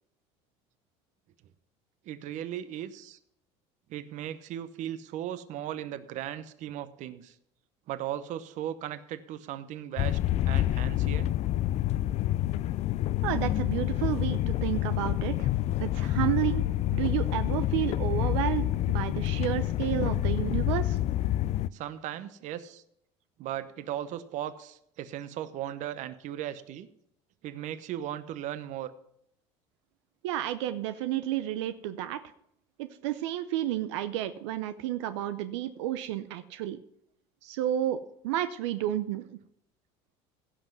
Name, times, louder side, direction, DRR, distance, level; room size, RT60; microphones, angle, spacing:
voice 1, 2.1-3.2 3.9-7.3 7.9-10.2 10.4-11.3 21.7-22.8 23.4-26.9 27.4-28.9, right 11 dB, 60° right, 13 dB, 0.9 m, -37 dB
sound 1, 10.0-21.7, left 13 dB, 50° left, 0.4 m, -28 dB
voice 2, 13.2-15.5 15.8-21.0 30.2-32.2 32.8-36.8 37.4-39.4, right 13 dB, 90° right, 11 dB, 0.6 m, -31 dB
16.0 x 5.6 x 6.0 m, 0.73 s
supercardioid pair, 105°, 14 cm